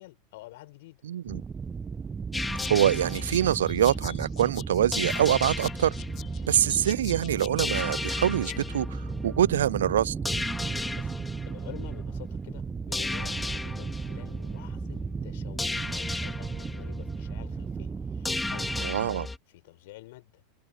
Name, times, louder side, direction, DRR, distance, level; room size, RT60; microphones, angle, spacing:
voice 1, 0.0-1.0 11.0-11.2 11.5-19.2 19.5-20.4, left 19 dB, 60° left, 4.6 m, -49 dB
voice 2, 1.0-1.4 2.7-5.9 6.5-10.1 18.8-19.3, right 11 dB, 70° right, 0.3 m, -25 dB
sound 1, 1.3-18.9, right 5 dB, 20° right, 1.1 m, -36 dB
sound 2, 2.3-19.4, left 2 dB, 10° left, 4.7 m, -36 dB
sound 3, 2.6-8.6, left 13 dB, 40° left, 4.9 m, -45 dB
figure-of-eight pair, 85°, 0 cm